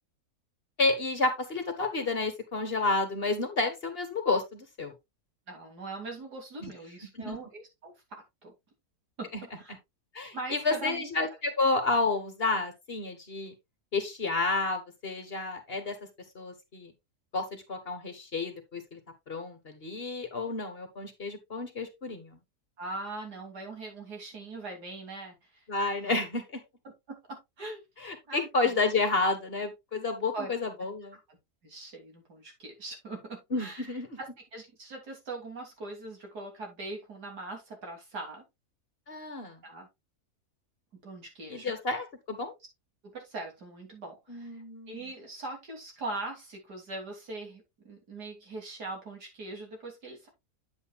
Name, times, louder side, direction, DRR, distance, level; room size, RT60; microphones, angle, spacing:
voice 1, 0.8-4.9 6.6-6.7 7.2-7.4 9.3-9.4 10.1-13.5 13.9-16.0 16.3-16.9 17.3-19.0 19.3-22.4 25.7-26.6 28.0-31.2 33.5-34.1 39.1-39.6 41.5-42.5 44.3-45.1, left 3 dB, 40° left, 7 dB, 1.5 m, -30 dB
voice 2, 5.5-8.5 9.2-9.7 10.3-11.0 22.8-25.6 26.0-26.2 27.3-27.8 28.3-28.7 30.3-30.5 31.1-31.4 31.6-38.4 39.6-39.9 41.0-41.7 43.1-50.3, right 2 dB, 80° right, 1 dB, 3.4 m, -41 dB
8.9 x 8.1 x 2.3 m, 0.21 s
omnidirectional pair, 1.7 m